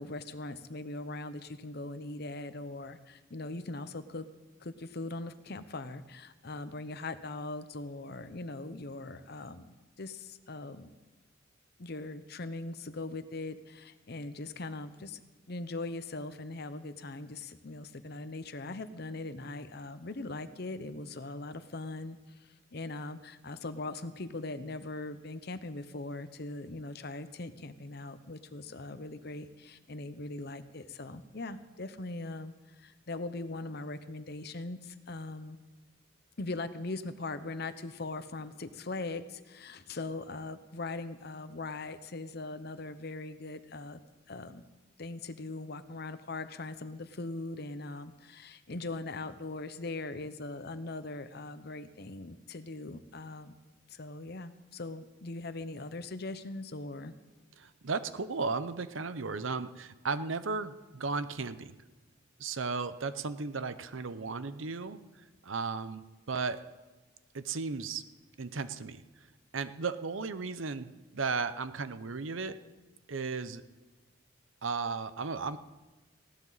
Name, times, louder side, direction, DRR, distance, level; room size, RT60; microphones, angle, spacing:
voice 1, 0.0-4.3 4.6-10.9 11.8-15.2 15.5-35.6 36.4-44.0 44.3-44.6 45.0-53.5 53.9-57.1, left 2 dB, 50° left, 12 dB, 0.8 m, -40 dB
voice 2, 57.6-61.8 62.4-65.0 65.4-66.6 67.3-68.0 68.4-69.0 69.5-72.6 73.1-73.6 74.6-75.6, right 4 dB, 75° right, 12 dB, 0.8 m, -35 dB
19.5 x 16.5 x 4.1 m, 1.2 s
head